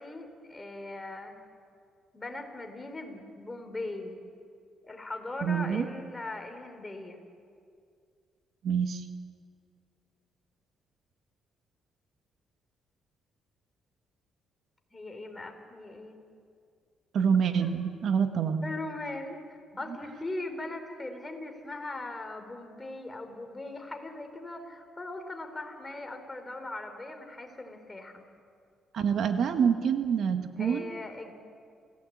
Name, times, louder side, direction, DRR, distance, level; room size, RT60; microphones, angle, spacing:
voice 1, 0.0-1.4 2.1-4.2 4.8-7.2 14.9-16.2 17.6-17.7 18.6-19.4 19.8-28.2 30.6-31.3, left 2 dB, 20° left, 5 dB, 3.9 m, -39 dB
voice 2, 5.4-5.9 8.6-9.0 17.1-18.7 28.9-30.9, right 7 dB, 65° right, 7 dB, 1.5 m, -26 dB
28.5 x 16.5 x 8.7 m, 2.3 s
cardioid pair, 90°, 0 cm